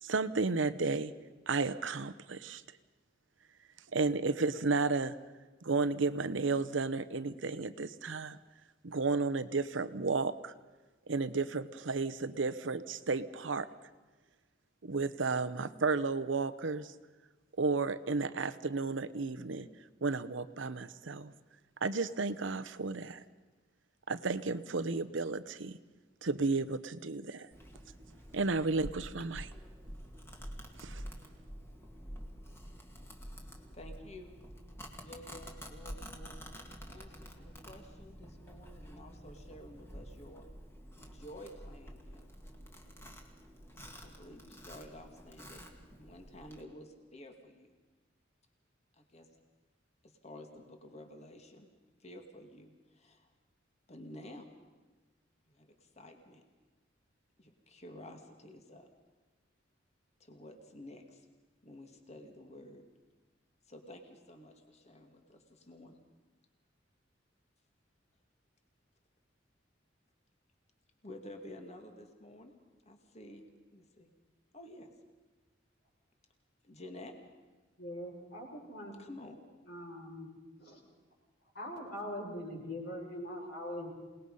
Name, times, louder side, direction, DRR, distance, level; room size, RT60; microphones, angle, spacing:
voice 1, 0.0-1.1 1.5-2.6 3.9-5.2 5.6-8.4 8.8-10.5 11.1-13.7 14.8-16.9 17.6-19.7 20.0-21.3 21.8-23.2 24.1-25.8 26.2-27.5 28.3-29.5 30.8-31.0, right 3 dB, 80° right, 12 dB, 0.9 m, -33 dB
Domestic sounds home sounds, 27.5-46.6, equal, 15° left, 2.0 m, -49 dB
voice 2, 33.7-34.4 35.0-36.4 36.9-40.5 41.0-42.3 44.0-45.6 46.0-47.7 48.9-49.3 50.0-51.7 52.0-53.3 53.9-54.5 55.5-56.4 57.4-58.9 60.2-61.3 61.6-62.8 63.7-66.0 71.0-72.5 72.9-73.5 73.7-74.1 74.5-74.9 76.6-77.2 79.0-79.4, left 1 dB, 35° left, 5 dB, 2.2 m, -51 dB
voice 3, 77.8-78.9 79.7-80.3 80.6-80.8 81.5-83.9, left 1 dB, 60° left, -2 dB, 6.1 m, -42 dB
27.5 x 19.5 x 5.5 m, 1.3 s
head